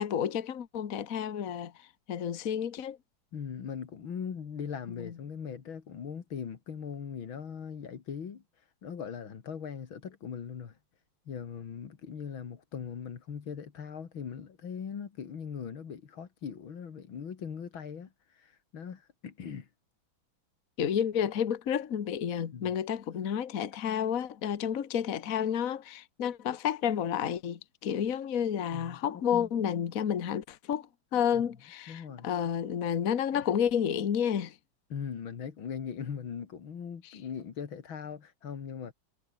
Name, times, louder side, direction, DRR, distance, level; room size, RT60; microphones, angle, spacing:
voice 1, 0.0-1.7 2.1-3.0 5.0-5.1 20.8-34.5, left 8 dB, 50° left, 1.6 m, -30 dB
voice 2, 3.3-8.4 8.8-10.8 11.3-19.7 22.5-22.7 28.7-29.0 29.3-29.7 31.3-31.4 31.9-32.3 33.3-33.4 34.9-38.9, left 7 dB, 90° left, 2.9 m, -40 dB
omnidirectional pair, 2.1 m